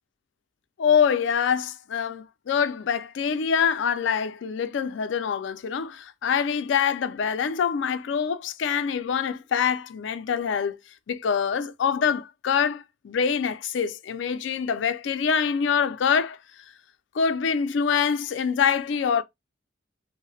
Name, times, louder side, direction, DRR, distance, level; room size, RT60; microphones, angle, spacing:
voice 1, 0.8-10.8 11.1-16.4 17.1-19.2, left 7 dB, 70° left, 0.4 m, -25 dB
2.7 x 2.0 x 3.0 m
head